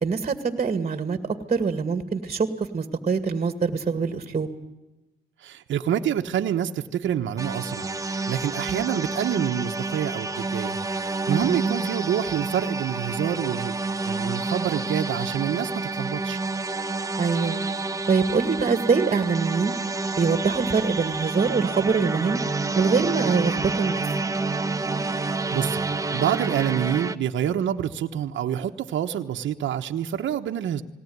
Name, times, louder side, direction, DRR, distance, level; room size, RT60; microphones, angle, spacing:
voice 1, 0.0-1.2 1.5-4.5 11.3-11.9 17.2-17.6 18.1-19.7 20.1-22.4 22.8-24.1, right 5 dB, 35° right, 9 dB, 2.1 m, -24 dB
voice 2, 5.4-10.8 11.3-13.7 14.0-16.4 25.2-25.8 26.1-30.8, right 10 dB, 70° right, 4 dB, 1.3 m, -27 dB
sound 1, 7.4-27.2, right 3 dB, 15° right, 1.1 m, -29 dB
19.0 x 18.5 x 9.6 m, 1.0 s
cardioid pair, 90°, 20 cm